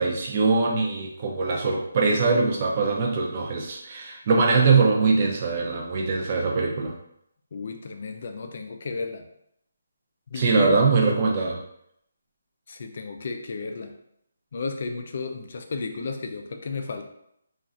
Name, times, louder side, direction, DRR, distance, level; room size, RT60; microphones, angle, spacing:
voice 1, 0.0-6.9 10.4-11.6, right 4 dB, 35° right, 0 dB, 0.6 m, -22 dB
voice 2, 7.5-9.3 10.3-10.8 12.7-14.0 14.5-17.1, left 4 dB, 50° left, 5 dB, 0.4 m, -33 dB
3.0 x 2.4 x 2.5 m, 0.75 s
hypercardioid pair, 165°, 0 cm